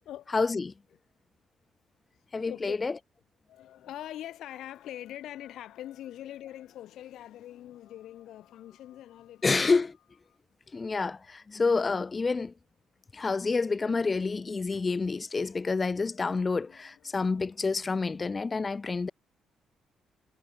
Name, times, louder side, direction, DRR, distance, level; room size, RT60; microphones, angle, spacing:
voice 1, 0.3-0.7 2.3-2.9 9.4-10.0 10.7-12.5 13.1-19.1, left 4 dB, 30° left, 0.4 m, -28 dB
voice 2, 2.5-2.8 3.5-9.6 10.3-10.4 16.1-17.5 18.2-19.1, left 12 dB, 80° left, 1.6 m, -44 dB
cardioid pair, 90°, 0 cm